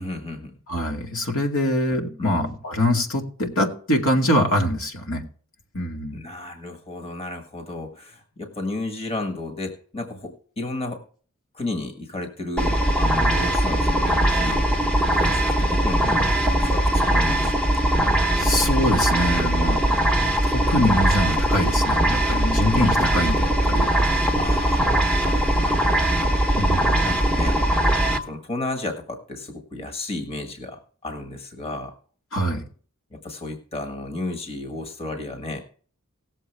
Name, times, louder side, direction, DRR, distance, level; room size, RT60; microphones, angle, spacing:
voice 1, 0.0-0.6 2.2-2.4 6.1-11.0 11.5-14.7 15.1-17.8 19.9-20.0 23.0-23.2 24.4-24.9 25.2-26.1 27.0-27.8 28.2-31.9 33.1-35.6, left 2 dB, 30° left, 4 dB, 1.6 m, -33 dB
voice 2, 0.7-5.2 5.7-6.2 18.4-19.8 20.4-23.9 26.6-27.1 32.3-32.6, left 1 dB, 75° left, 1 dB, 2.3 m, -24 dB
sound 1, 12.6-28.2, right 1 dB, 5° left, 1.1 m, -20 dB
18.5 x 7.5 x 3.4 m, 0.43 s
head